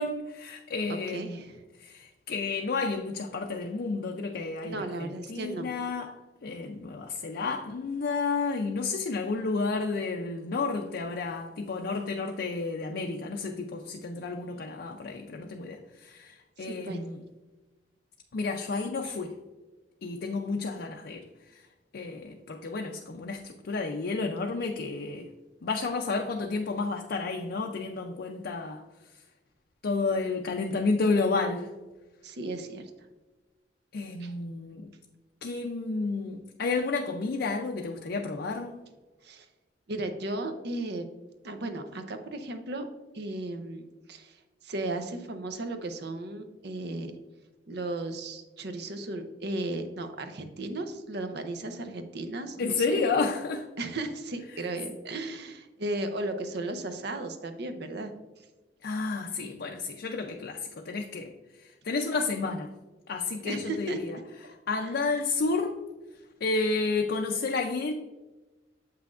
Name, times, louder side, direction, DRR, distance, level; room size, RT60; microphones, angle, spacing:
voice 1, 0.0-1.4 1.8-17.2 18.3-19.3 20.0-21.2 21.5-21.6 21.9-25.3 25.6-28.8 29.8-31.7 33.9-34.9 35.4-38.8 52.6-53.7 54.5-54.7 58.8-61.3 61.6-62.7 63.1-64.2 64.5-65.8 66.4-67.9, left 3 dB, 60° left, 3 dB, 0.5 m, -31 dB
voice 2, 1.1-1.6 4.6-5.7 16.6-17.0 19.0-19.1 32.2-32.9 34.2-34.3 39.2-39.5 39.9-41.1 41.4-42.8 43.1-44.4 44.6-47.1 47.7-53.0 53.8-58.1 63.4-64.0 64.4-64.5 64.8-64.9, right 2 dB, 65° right, 7 dB, 0.7 m, -35 dB
7.5 x 5.8 x 2.4 m, 1.2 s
head